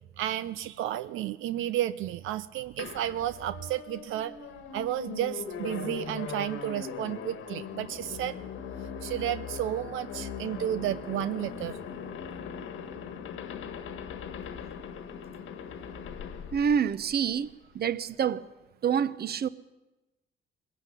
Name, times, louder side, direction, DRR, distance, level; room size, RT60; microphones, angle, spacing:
voice 1, 0.2-4.3 4.7-8.4 9.0-11.8, right 12 dB, 85° right, 0.7 m, -32 dB
sound 1, 2.8-17.5, left 6 dB, 80° left, 1.7 m, -40 dB
voice 2, 16.5-18.5 18.8-19.5, right 7 dB, 50° right, 1.0 m, -27 dB
21.0 x 15.5 x 9.9 m
cardioid pair, 90°, 20 cm